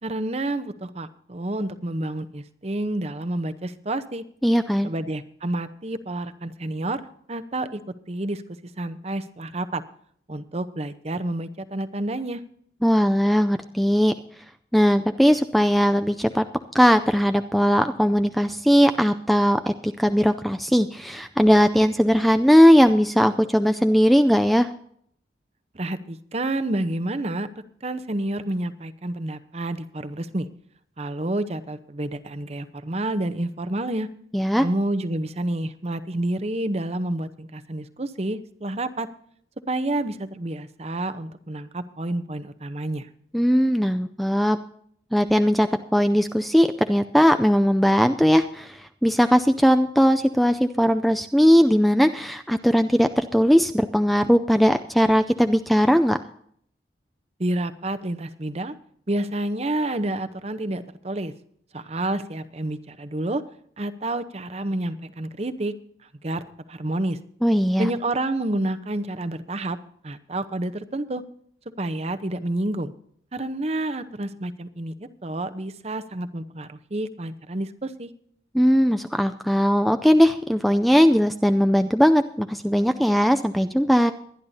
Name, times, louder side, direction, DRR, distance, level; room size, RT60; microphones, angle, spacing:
voice 1, 0.0-4.2 4.8-7.8 8.1-8.4 8.8-9.8 10.3-12.4 25.7-27.5 27.8-30.5 31.0-34.1 34.6-39.1 39.7-43.1 57.4-58.8 59.1-61.3 61.7-63.4 63.8-65.7 66.2-66.4 66.7-67.2 67.8-69.8 70.0-71.2 71.8-72.9 73.3-78.1, right 1 dB, 35° right, 10 dB, 0.8 m, -29 dB
voice 2, 4.4-4.9 12.8-14.1 14.7-16.5 16.7-24.7 34.3-34.7 43.3-44.6 45.1-56.2 67.4-67.9 78.5-84.1, equal, ahead, 8 dB, 0.4 m, -19 dB
23.0 x 10.5 x 2.7 m, 0.63 s
head